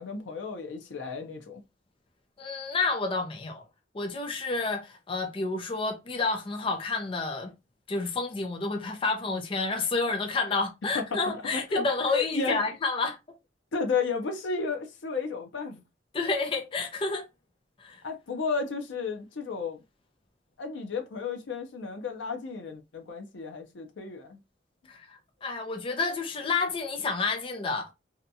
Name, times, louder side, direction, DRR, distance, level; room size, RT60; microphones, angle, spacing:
voice 1, 0.0-1.6 10.9-11.8 12.1-12.6 13.7-15.8 18.0-19.8 20.6-24.4, left 4 dB, 90° left, 0.5 m, -33 dB
voice 2, 2.4-3.6 3.9-7.5 7.9-13.2 16.1-17.3 17.8-18.0 24.9-27.9, left 3 dB, 30° left, 0.5 m, -30 dB
2.8 x 2.2 x 2.6 m
head